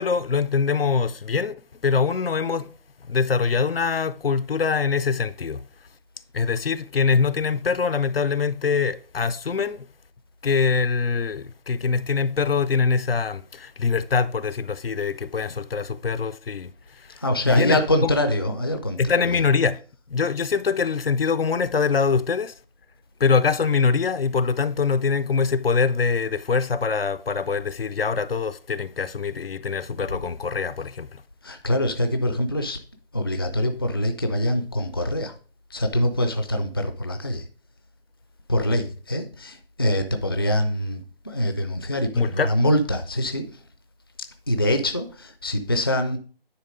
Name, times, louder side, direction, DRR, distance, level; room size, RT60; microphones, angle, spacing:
voice 1, 0.0-1.6 1.8-2.7 3.1-5.6 6.3-9.9 10.4-16.7 17.1-17.2 17.5-18.1 19.0-19.8 20.1-22.5 23.2-31.2 42.1-42.5, left 5 dB, 75° left, 0.6 m, -23 dB
voice 2, 17.2-19.0 19.2-19.4 31.4-32.8 33.1-35.3 35.7-37.5 38.5-43.6 44.5-46.2, left 1 dB, 25° left, 0.4 m, -24 dB
9.7 x 3.4 x 5.0 m
figure-of-eight pair, 155°, 29 cm